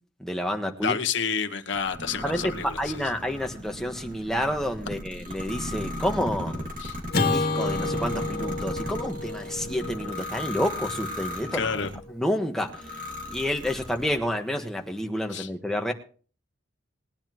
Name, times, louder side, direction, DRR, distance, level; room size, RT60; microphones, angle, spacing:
voice 1, 0.2-1.0 2.2-6.6 7.2-11.7 12.1-12.8 13.3-15.9, equal, 5° left, 2 dB, 1.4 m, -29 dB
voice 2, 0.8-3.1 6.8-7.0 11.5-11.9 15.3-15.5, left 6 dB, 75° left, 6 dB, 1.3 m, -29 dB
sound 1, 1.7-12.0 12.6-14.2, left 1 dB, 45° right, 2.4 m, -36 dB
Acoustic guitar / Strum, 7.1-11.5, left 3 dB, 50° left, 2.0 m, -30 dB
20.5 x 10.0 x 3.0 m, 0.41 s
head